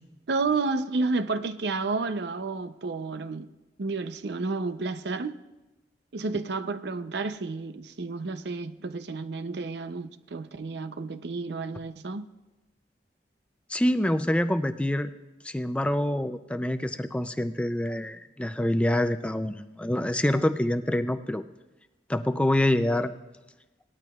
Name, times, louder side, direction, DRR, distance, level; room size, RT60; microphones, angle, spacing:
voice 1, 0.3-3.5 3.8-5.4 6.1-12.3, right 3 dB, 75° right, 0.6 m, -31 dB
voice 2, 13.7-15.1 15.4-21.4 22.1-23.1, left 1 dB, 5° left, 0.4 m, -26 dB
19.0 x 12.0 x 2.4 m
head